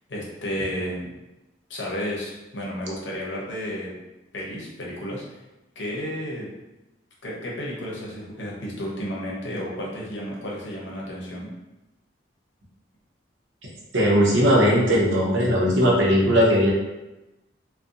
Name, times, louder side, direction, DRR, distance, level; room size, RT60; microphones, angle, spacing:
voice 1, 0.1-1.1 1.7-3.9 4.3-5.4 5.8-6.5 7.2-11.5, equal, 75° left, -4 dB, 0.7 m, -32 dB
voice 2, 13.9-16.7, equal, 90° right, -4 dB, 0.7 m, -18 dB
2.6 x 2.2 x 2.4 m, 1.0 s
head